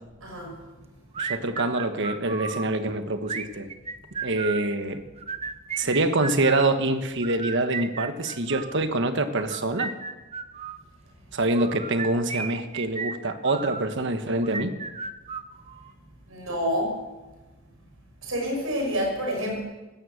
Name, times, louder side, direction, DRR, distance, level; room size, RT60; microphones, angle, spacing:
voice 1, 0.2-0.6 16.3-17.0 18.2-19.6, equal, 85° right, 1 dB, 6.2 m, -28 dB
sound 1, 1.1-2.7 3.2-4.7 5.2-6.7 7.2-8.8 9.4-10.8 11.5-13.9 14.4-15.9, right 5 dB, 30° right, 0.8 m, -34 dB
voice 2, 1.2-3.7 4.2-5.0 5.8-9.9 11.3-14.7, right 2 dB, 60° right, 8 dB, 1.3 m, -25 dB
16.5 x 13.0 x 6.5 m, 1.2 s
head